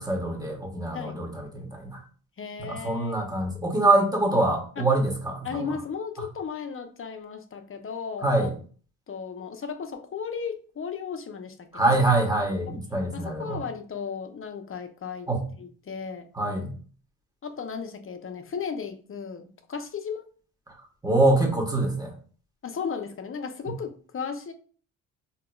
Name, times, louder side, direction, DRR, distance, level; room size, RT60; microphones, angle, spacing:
voice 1, 0.0-2.0 2.7-5.7 8.2-8.5 11.7-13.6 15.3-15.4 16.4-16.7 21.0-22.1, right 2 dB, 10° right, 2 dB, 1.2 m, -24 dB
voice 2, 2.4-3.2 4.8-4.9 5.4-8.5 9.1-12.0 12.7-12.8 13.1-15.3 15.6-16.3 17.4-20.2 22.6-24.5, left 6 dB, 30° left, 7 dB, 0.6 m, -35 dB
3.8 x 2.9 x 2.3 m, 0.42 s
supercardioid pair, 70°, 40 cm